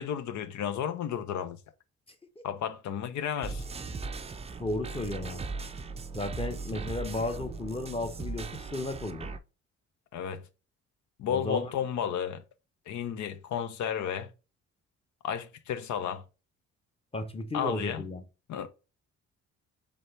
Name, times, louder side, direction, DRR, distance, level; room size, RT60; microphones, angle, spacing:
voice 1, 0.0-1.6 2.4-3.6 10.1-10.4 11.2-12.4 12.9-14.3 15.2-16.2 17.5-18.0 18.5-18.7, left 8 dB, 70° left, 0.7 m, -32 dB
sound 1, 3.4-9.4, right 4 dB, 20° right, 0.5 m, -38 dB
voice 2, 4.6-5.4 6.1-9.3 11.3-11.7 17.1-18.2, left 2 dB, 20° left, 0.9 m, -34 dB
4.1 x 3.4 x 3.2 m
cardioid pair, 90°, 30 cm